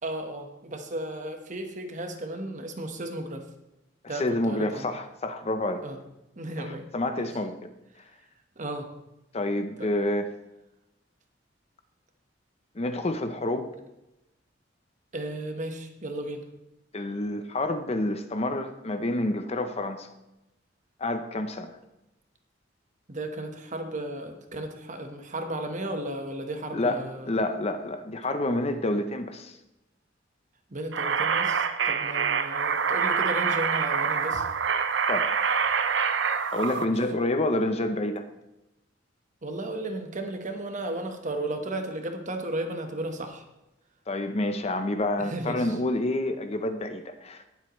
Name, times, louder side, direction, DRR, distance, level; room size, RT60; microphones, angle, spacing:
voice 1, 0.0-3.4 4.1-4.9 5.8-6.0 6.4-6.9 7.2-7.3 8.6-8.9 9.8-9.9 15.1-16.4 23.1-27.3 30.7-34.4 36.8-36.9 39.4-43.4 45.2-45.7, right 1 dB, 40° right, 5 dB, 1.2 m, -34 dB
voice 2, 4.0-5.8 6.6-7.7 9.3-10.3 12.7-13.7 16.9-20.1 21.0-21.8 26.7-29.6 35.1-35.3 36.5-38.2 44.1-47.5, left 1 dB, 35° left, 8 dB, 0.6 m, -28 dB
sound 1, 30.9-36.8, right 6 dB, 70° right, 0.7 m, -26 dB
18.5 x 7.7 x 3.1 m, 0.94 s
head